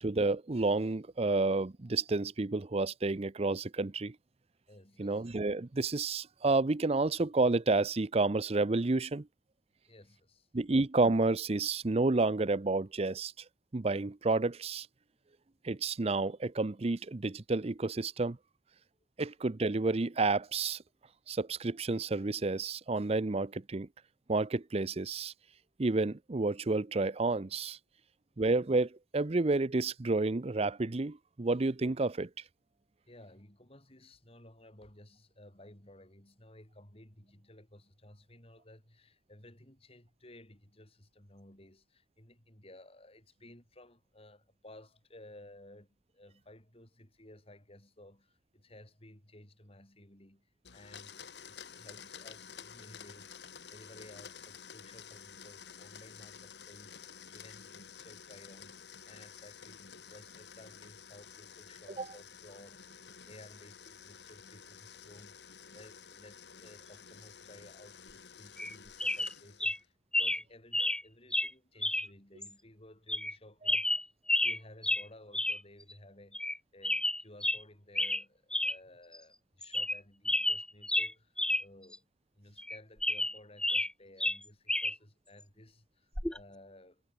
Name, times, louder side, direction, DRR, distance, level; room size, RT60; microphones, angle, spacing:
voice 1, 0.0-4.1 5.0-9.3 10.5-13.3 13.7-14.9 15.6-18.4 19.2-20.8 21.3-23.9 24.3-25.3 25.8-27.8 28.4-32.3 62.0-62.1, right 3 dB, 35° right, 0.6 m, -30 dB
voice 2, 4.7-5.3 9.9-10.5 33.1-74.1 74.4-82.1 82.4-87.0, left 1 dB, 35° left, 5.3 m, -56 dB
Domestic sounds home sounds, 50.6-69.9, left 7 dB, 75° left, 2.3 m, -51 dB
sound 1, 68.6-68.7 69.0-69.3 69.6-69.8 70.1-70.4 70.7-71.0 71.3-71.5 71.8-72.1 72.4-72.5 73.1-73.3 73.6-74.6 74.8-75.0 75.3-75.6 75.9-76.0 76.3-76.6 76.8-77.6 77.9-78.2 78.5-78.8 79.1-79.2 79.6-80.0 80.2-81.6 81.9-82.0 82.6-83.9 84.2-84.9 86.1-86.4, left 1 dB, 5° left, 0.8 m, -31 dB
head